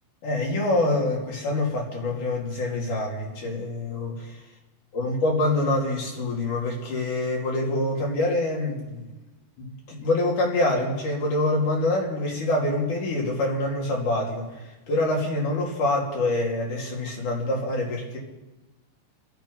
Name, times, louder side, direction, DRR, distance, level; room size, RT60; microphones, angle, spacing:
voice 1, 0.2-4.4 4.9-9.1 9.6-18.2, left 2 dB, 50° left, -2 dB, 4.0 m, -26 dB
26.5 x 10.0 x 5.5 m, 1.1 s
omnidirectional pair, 5.1 m